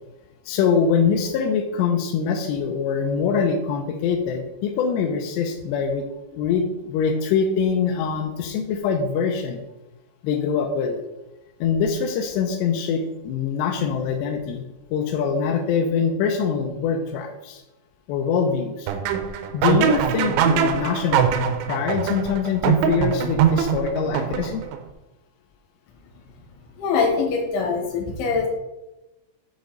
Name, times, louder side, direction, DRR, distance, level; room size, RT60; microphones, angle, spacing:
voice 1, 0.5-6.0 6.3-9.6 10.2-11.0 11.6-14.6 14.9-17.6 18.1-18.9 19.5-21.2 21.7-24.6, left 6 dB, 85° left, 3 dB, 2.4 m, -23 dB
sound 1, 18.9-24.8, right 7 dB, 85° right, 3.0 m, -22 dB
voice 2, 26.8-28.5, left 5 dB, 70° left, 1 dB, 3.0 m, -23 dB
8.1 x 5.1 x 3.8 m, 0.99 s
omnidirectional pair, 5.6 m